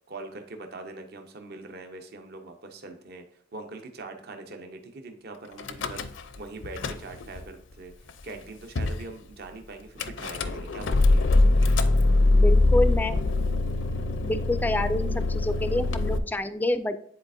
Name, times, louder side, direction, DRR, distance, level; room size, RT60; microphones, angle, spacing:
voice 1, 0.1-3.2 3.5-7.9 8.2-11.3, right 3 dB, 55° right, 5 dB, 0.8 m, -42 dB
Car / Engine starting / Idling, 5.6-6.4 6.6-7.4 8.1-8.2 8.3-8.4 8.8-9.0 10.0-16.2, left 2 dB, 75° left, 0.5 m, -23 dB
voice 2, 12.3-13.2 14.2-17.0, left 1 dB, 10° left, 12 dB, 0.3 m, -27 dB
9.8 x 4.1 x 2.6 m, 0.68 s
head